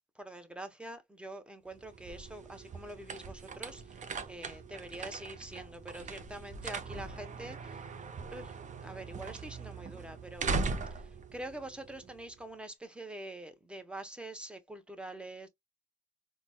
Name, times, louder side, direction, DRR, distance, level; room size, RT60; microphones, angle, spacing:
voice 1, 0.1-8.0 8.3-10.5 10.9-15.5, right 1 dB, 5° right, 0.8 m, -45 dB
sound 1, 1.7-12.4, right 4 dB, 40° right, 0.6 m, -40 dB
3.8 x 2.2 x 2.2 m
cardioid pair, 90°, 20 cm